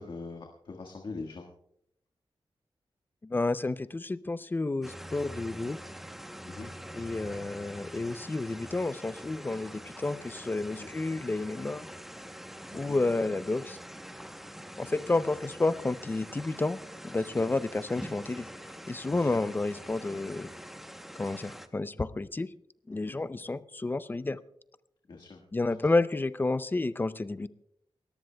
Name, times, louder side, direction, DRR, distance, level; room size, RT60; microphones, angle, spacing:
voice 1, 0.0-1.5 6.4-6.7 10.8-10.9 12.7-13.0 17.3-17.5 19.1-19.4 22.9-23.2 25.1-25.4, left 3 dB, 60° left, 1 dB, 1.6 m, -43 dB
voice 2, 3.2-5.8 7.0-11.9 12.7-13.8 14.8-16.8 17.0-18.5 18.9-20.5 21.2-22.5 22.9-24.4 25.5-27.5, left 2 dB, 20° left, 15 dB, 0.4 m, -30 dB
sound 1, 4.8-21.7, equal, 5° right, 0.9 m, -45 dB
29.0 x 14.0 x 2.2 m, 0.75 s
wide cardioid pair, 145°, 9 cm